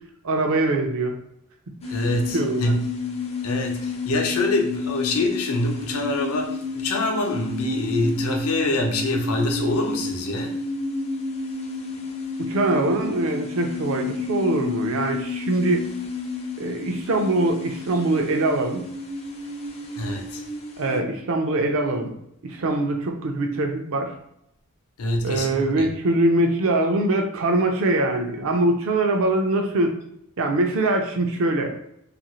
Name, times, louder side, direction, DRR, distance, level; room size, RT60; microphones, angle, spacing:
voice 1, 0.2-1.2 2.3-2.6 12.4-15.9 16.6-18.9 20.8-22.1 22.4-24.1 25.2-29.9 30.4-31.7, right 2 dB, 65° right, 3 dB, 0.5 m, -23 dB
sound 1, 1.8-21.0, left 3 dB, 30° left, 0.4 m, -31 dB
voice 2, 1.9-2.9 3.4-10.5 20.0-20.4 25.0-25.9, left 2 dB, 80° left, 3 dB, 0.6 m, -25 dB
2.7 x 2.5 x 3.0 m, 0.76 s
head